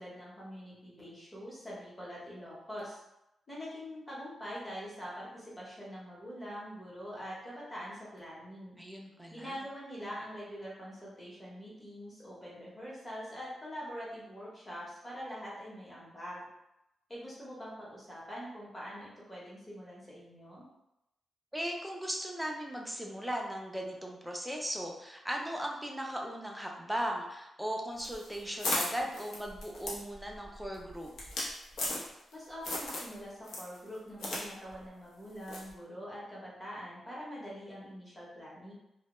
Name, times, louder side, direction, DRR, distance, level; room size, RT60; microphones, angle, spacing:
voice 1, 0.0-3.0 3.5-8.8 9.3-16.4 17.1-20.6 32.3-38.7, equal, 15° left, -6 dB, 0.8 m, -44 dB
voice 2, 8.8-9.6 21.5-31.1, equal, 5° right, 0 dB, 0.3 m, -37 dB
sound 1, 28.0-32.3 32.6-33.1 33.4-34.4 34.7-34.8 35.5-35.7, left 1 dB, 85° left, 0.6 m, -36 dB
2.1 x 2.1 x 2.9 m, 0.89 s
wide cardioid pair, 145°, 0 cm